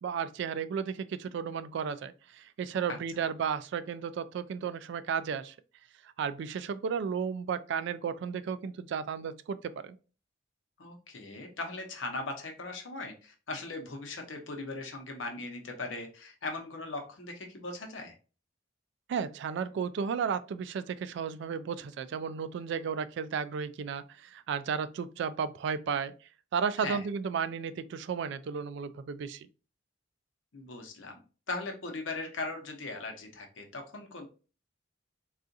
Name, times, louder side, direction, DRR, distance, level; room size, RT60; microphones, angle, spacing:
voice 1, 0.0-5.5 6.2-10.0 19.1-26.1 26.5-29.5, right 6 dB, 65° right, 0.3 m, -33 dB
voice 2, 2.9-3.3 10.8-18.1 26.8-27.0 30.5-31.2 31.5-34.3, left 3 dB, 80° left, 0.8 m, -39 dB
3.7 x 2.4 x 2.6 m
head